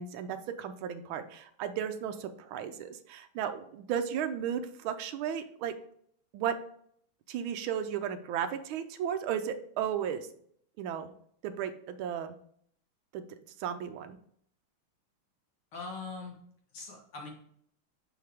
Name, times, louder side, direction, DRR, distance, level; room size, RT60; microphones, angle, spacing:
voice 1, 0.0-5.7 6.3-6.6 7.3-10.3 10.8-11.1 11.4-12.3 13.1-13.2 13.6-14.2, right 9 dB, 80° right, 8 dB, 1.4 m, -34 dB
voice 2, 15.7-16.4 16.7-17.3, left 4 dB, 85° left, 0 dB, 2.3 m, -41 dB
5.6 x 5.4 x 3.5 m, 0.65 s
omnidirectional pair, 2.3 m